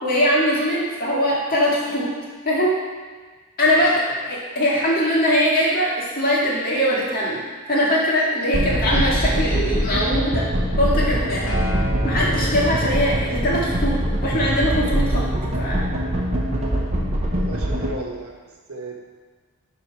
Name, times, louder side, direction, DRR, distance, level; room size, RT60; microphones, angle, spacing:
voice 1, 0.0-2.1 2.5-2.7 3.6-4.0 4.3-7.4 7.7-10.5 10.8-11.5 12.0-15.2 15.6-15.9, equal, 40° left, -5 dB, 2.0 m, -21 dB
sound 1, 8.5-17.9, equal, 30° right, 1.1 m, -23 dB
Acoustic guitar, 11.5-15.8 16.6-16.7, left 2 dB, 75° left, 1.8 m, -36 dB
voice 2, 17.2-18.3 18.7-19.0, right 2 dB, 75° right, 0 dB, 1.2 m, -34 dB
11.0 x 4.1 x 4.7 m, 1.4 s
head